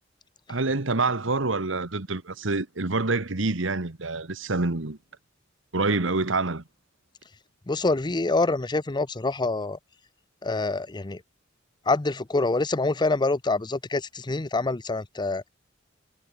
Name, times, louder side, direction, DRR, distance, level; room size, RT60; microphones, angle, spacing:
voice 1, 0.5-5.0 5.7-6.6, right 3 dB, 70° right, 1.6 m, -26 dB
voice 2, 7.7-9.8 10.4-11.2 11.9-15.5, left 3 dB, 20° left, 0.7 m, -26 dB
head